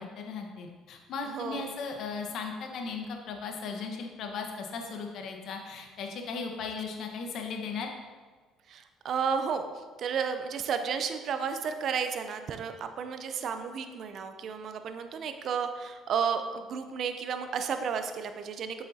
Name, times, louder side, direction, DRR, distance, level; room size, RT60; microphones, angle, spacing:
voice 1, 0.0-7.9, left 5 dB, 65° left, 3 dB, 1.2 m, -37 dB
voice 2, 1.3-1.7 8.7-9.7 10.0-18.8, right 6 dB, 60° right, 8 dB, 0.6 m, -32 dB
7.8 x 6.9 x 2.8 m, 1.4 s
supercardioid pair, 70°, 0 cm